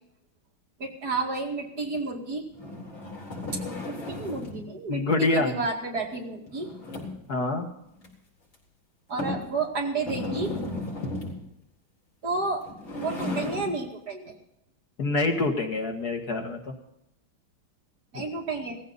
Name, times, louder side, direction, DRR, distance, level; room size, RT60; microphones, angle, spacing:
voice 1, 0.8-2.4 3.5-3.6 4.1-6.7 9.1-10.5 12.2-12.6 13.0-14.3 18.1-18.8, right 3 dB, 50° right, 0 dB, 2.7 m, -31 dB
sound 1, 2.5-4.7 6.5-7.3 8.0-8.1 8.5-8.6 9.2-9.5 10.0-11.4 12.5-13.8, left 2 dB, 85° left, 4.7 m, -35 dB
voice 2, 4.9-5.6 7.3-7.7 15.0-16.7 18.1-18.2, left 2 dB, 50° left, 2 dB, 2.2 m, -26 dB
18.0 x 15.0 x 4.1 m, 0.80 s
omnidirectional pair, 2.2 m